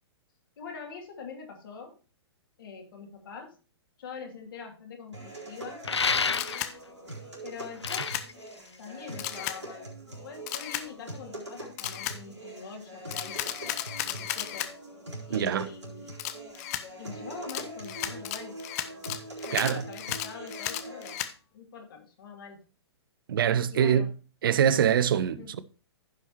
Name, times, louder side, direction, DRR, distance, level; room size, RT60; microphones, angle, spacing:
voice 1, 0.6-1.9 2.6-3.6 4.0-5.8 7.4-8.2 8.8-13.4 14.0-14.7 15.3-16.1 17.0-18.6 19.4-21.2 21.5-22.6 23.7-24.1 25.4-25.5, left 5 dB, 55° left, 2.6 m, -44 dB
sound 1, 5.1-21.1, right 1 dB, 85° right, 4.0 m, -43 dB
sound 2, 5.8-6.8 7.6-9.3, left 5 dB, 80° left, 0.5 m, -30 dB
Camera, 6.3-6.7 7.9-8.3 9.2-9.6 10.5-10.9 11.8-12.2 13.1-14.7 16.2-16.8 17.5-21.3, left 12 dB, 35° left, 0.7 m, -34 dB
voice 2, 15.3-15.7 19.5-19.8 23.3-24.1 24.4-25.6, right 8 dB, 50° right, 0.7 m, -24 dB
15.5 x 5.6 x 3.0 m
figure-of-eight pair, 115°, 14 cm